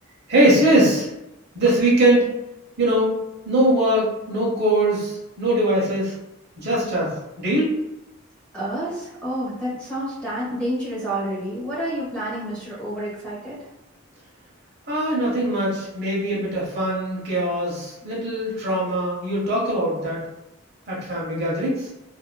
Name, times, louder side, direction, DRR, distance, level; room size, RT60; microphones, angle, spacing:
voice 1, 0.3-1.1 1.5-2.3 2.8-3.2 3.4-6.1 6.6-7.1 7.4-7.7 14.9-20.2 20.9-21.9, right 1 dB, 50° right, -5 dB, 0.9 m, -21 dB
voice 2, 8.5-13.6, right 1 dB, 5° left, -8 dB, 0.9 m, -29 dB
2.7 x 2.5 x 2.2 m, 0.90 s
head